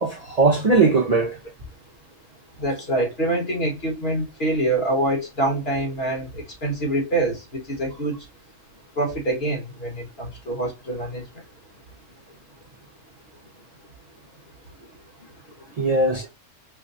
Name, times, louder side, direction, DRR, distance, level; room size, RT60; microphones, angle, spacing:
voice 1, 0.0-1.4 15.8-16.3, right 3 dB, 40° right, 0.6 m, -19 dB
voice 2, 2.6-8.2 9.0-11.2, right 2 dB, 50° left, 1.6 m, -25 dB
4.4 x 2.3 x 2.5 m
omnidirectional pair, 1.3 m